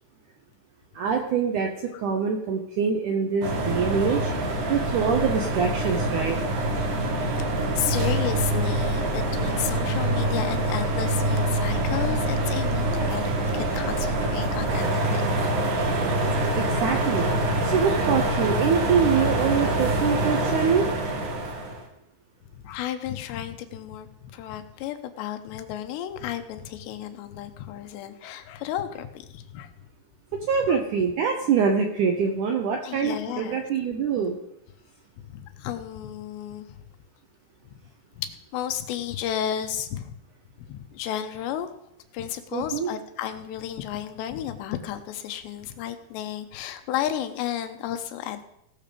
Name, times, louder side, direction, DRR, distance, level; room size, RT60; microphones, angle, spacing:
voice 1, 0.9-4.3 4.7-6.4 16.6-17.3 17.6-20.9 30.3-34.4 42.5-42.9, right 6 dB, 75° right, 3 dB, 1.8 m, -24 dB
sound 1, 3.4-21.8, right 1 dB, 55° right, 2.9 m, -25 dB
voice 2, 7.7-15.4 22.6-29.7 30.7-30.8 32.8-33.6 35.3-36.8 37.6-37.8 38.2-40.1 40.7-41.7 42.1-48.4, left 10 dB, 90° left, 8 dB, 3.1 m, -33 dB
18.0 x 6.6 x 5.1 m, 0.80 s
omnidirectional pair, 4.8 m